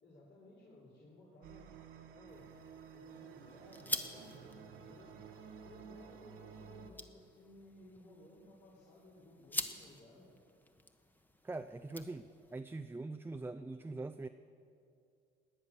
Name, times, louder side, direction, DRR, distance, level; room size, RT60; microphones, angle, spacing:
voice 1, 0.0-1.7 2.1-2.5 2.9-5.2 5.5-10.3, left 1 dB, 60° left, -6 dB, 3.5 m, -59 dB
sound 1, 1.4-6.9, right 6 dB, 90° right, 1.2 m, -53 dB
sound 2, 2.3-12.6, left 1 dB, 10° left, 1.1 m, -47 dB
voice 2, 11.4-14.3, right 2 dB, 10° right, 9 dB, 0.5 m, -43 dB
18.0 x 9.9 x 7.0 m, 2.5 s
cardioid pair, 90°, 20 cm